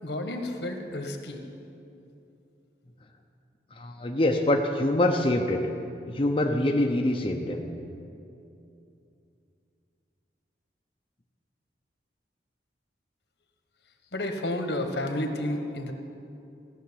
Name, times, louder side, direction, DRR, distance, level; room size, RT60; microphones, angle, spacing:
voice 1, 0.0-1.4 14.1-15.9, left 1 dB, 75° left, 5 dB, 1.4 m, -31 dB
voice 2, 3.7-5.7 6.1-7.6, left 1 dB, 30° left, 1 dB, 0.7 m, -25 dB
16.0 x 6.4 x 9.8 m, 2.7 s
head